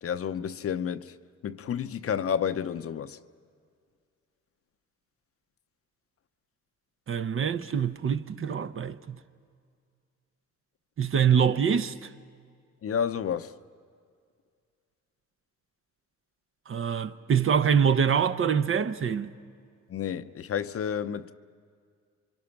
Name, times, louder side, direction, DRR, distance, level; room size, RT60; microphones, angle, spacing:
voice 1, 0.0-1.1 1.4-3.2 12.8-13.5 19.9-21.3, left 8 dB, 50° left, 0.7 m, -30 dB
voice 2, 7.1-9.2 11.0-12.1 16.7-19.3, right 7 dB, 45° right, 0.9 m, -25 dB
28.0 x 24.5 x 5.9 m
cardioid pair, 90°, 30 cm